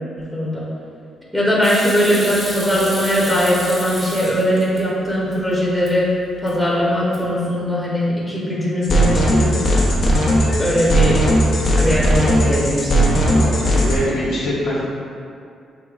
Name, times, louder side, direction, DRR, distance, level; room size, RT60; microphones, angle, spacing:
voice 1, 0.2-0.7 1.3-6.1 6.4-9.5 10.6-11.2 11.7-13.3, equal, 5° right, -6 dB, 1.1 m, -20 dB
Hands / Sink (filling or washing), 1.6-4.8 5.2-5.9 6.3-6.7 7.0-7.5, right 1 dB, 45° right, 1.4 m, -31 dB
sound 1, 8.8-14.0, equal, 55° left, 0.8 m, -17 dB
voice 2, 13.3-14.8, left 1 dB, 75° left, -11 dB, 1.1 m, -24 dB
6.5 x 2.9 x 2.4 m, 2.4 s
cardioid pair, 70°, 0 cm